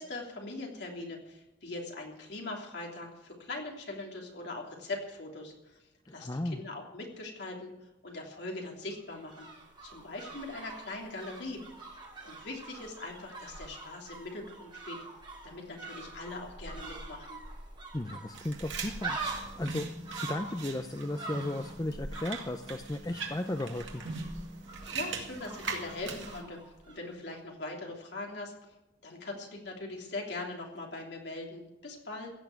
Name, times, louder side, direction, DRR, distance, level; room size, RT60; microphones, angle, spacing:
voice 1, 0.0-5.8 6.1-7.7 8.0-9.5 9.8-11.6 11.9-15.0 15.4-17.4 24.9-26.6 26.9-28.5 29.0-32.3, left 2 dB, 60° left, 0 dB, 3.2 m, -41 dB
voice 2, 6.1-6.6 17.9-19.9 20.2-24.0, left 1 dB, 20° left, 7 dB, 0.5 m, -35 dB
sound 1, 8.9-27.1 27.3-27.4, right 3 dB, 25° right, 5.0 m, -45 dB
sound 2, 18.3-26.4, right 4 dB, 75° right, 2.2 m, -41 dB
16.0 x 7.2 x 9.4 m, 0.97 s
head